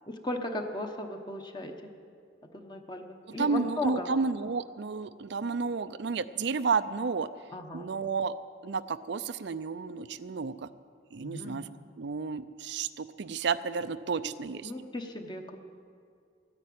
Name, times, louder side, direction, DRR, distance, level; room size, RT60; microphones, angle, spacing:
voice 1, 0.1-1.7 2.5-4.1 7.5-7.9 11.2-11.7 14.6-15.6, left 1 dB, 25° left, 4 dB, 1.0 m, -36 dB
voice 2, 3.4-7.3 7.7-8.3 8.6-10.7 11.1-11.7 12.0-14.7, right 4 dB, 65° right, 13 dB, 0.5 m, -31 dB
14.0 x 9.8 x 9.3 m, 2.3 s
head